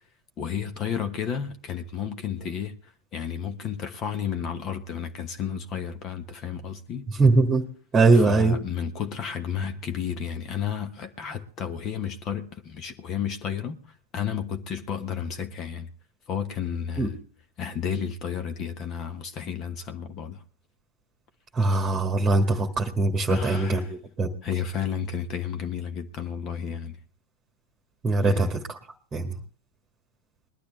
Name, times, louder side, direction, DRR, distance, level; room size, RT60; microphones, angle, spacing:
voice 1, 0.4-7.1 8.1-13.8 14.1-15.9 16.3-17.2 17.6-20.4 23.3-23.9 24.4-27.0 28.2-28.6, left 8 dB, 30° left, 1.2 m, -32 dB
voice 2, 7.2-7.6 7.9-8.6 17.0-17.1 21.5-24.3 28.0-28.5 29.1-29.3, right 3 dB, 15° right, 1.6 m, -21 dB
20.5 x 12.0 x 3.4 m
figure-of-eight pair, 90°, 0 cm